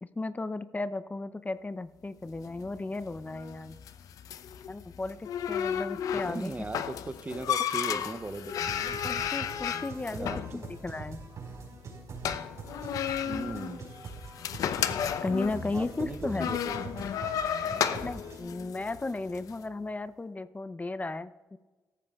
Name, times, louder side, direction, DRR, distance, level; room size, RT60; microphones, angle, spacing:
voice 1, 0.0-3.8 4.7-6.5 7.9-8.0 9.0-11.2 15.2-16.5 18.0-21.6, left 2 dB, 25° left, 14 dB, 0.6 m, -35 dB
sound 1, 2.3-19.5, left 8 dB, 75° left, 0.7 m, -34 dB
voice 2, 6.1-9.0 10.2-10.7 13.2-13.9 15.7-16.9 17.6-18.1, right 3 dB, 25° right, 14 dB, 0.7 m, -39 dB
sound 2, 8.6-18.4, right 4 dB, 60° right, 4.7 m, -43 dB
17.0 x 14.0 x 2.4 m, 1.3 s
supercardioid pair, 50°, 6 cm